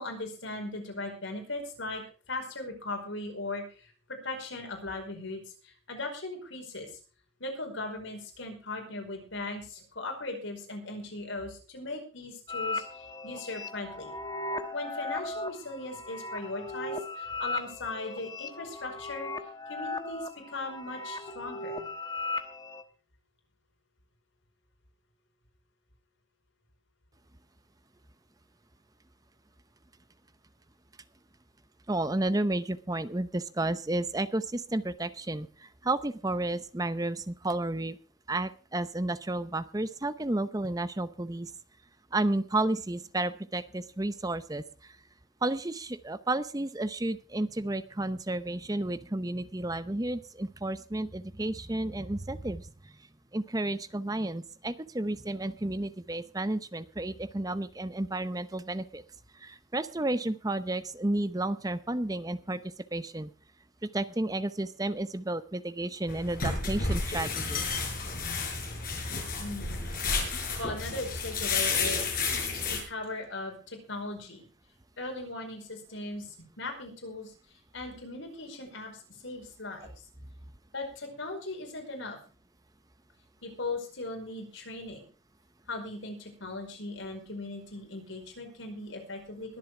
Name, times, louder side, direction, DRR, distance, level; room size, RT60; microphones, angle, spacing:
voice 1, 0.0-2.0 2.3-6.9 7.4-14.2 14.7-19.3 19.7-21.8 69.4-69.8 70.6-72.1 72.7-74.4 75.0-77.3 77.7-80.0 80.7-82.2 83.4-85.1 85.7-89.6, left 2 dB, 85° left, 3 dB, 5.0 m, -38 dB
sound 1, 12.5-22.8, left 2 dB, 20° left, 1.1 m, -37 dB
voice 2, 31.9-38.0 38.3-41.5 42.1-44.9 45.4-52.7 53.3-59.0 59.4-62.6 62.9-63.3 63.9-67.6, right 2 dB, 20° right, 13 dB, 0.7 m, -32 dB
sound 2, 66.1-72.8, left 4 dB, 45° left, 5.9 m, -31 dB
21.5 x 7.7 x 4.8 m, 0.38 s
head